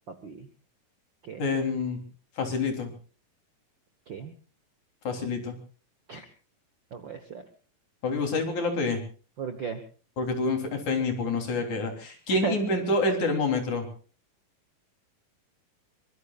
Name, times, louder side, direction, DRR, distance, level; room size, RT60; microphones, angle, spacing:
voice 1, 0.1-0.5 1.2-1.5 4.1-4.3 6.1-6.3 6.9-7.4 9.4-9.8 12.4-12.5, right 5 dB, 50° right, 8 dB, 1.4 m, -35 dB
voice 2, 1.4-2.0 2.4-2.9 5.0-5.6 8.0-9.0 10.2-13.9, left 3 dB, 60° left, 4 dB, 4.9 m, -27 dB
24.5 x 24.0 x 2.5 m, 0.39 s
omnidirectional pair, 3.9 m